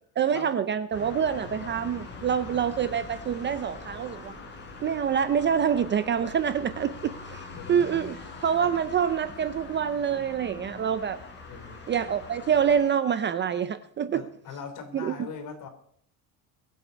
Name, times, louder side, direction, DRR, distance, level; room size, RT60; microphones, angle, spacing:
voice 1, 0.2-4.3 4.8-7.4 7.7-11.2 11.9-14.3 14.9-15.3, right 8 dB, 25° right, 0.5 m, -26 dB
sound 1, 0.9-12.8, left 3 dB, 25° left, 4.2 m, -43 dB
voice 2, 7.5-8.1 8.6-8.7 11.5-11.9 14.1-15.7, left 6 dB, 45° left, 3.4 m, -41 dB
22.5 x 7.9 x 5.3 m
cardioid pair, 145°, 42 cm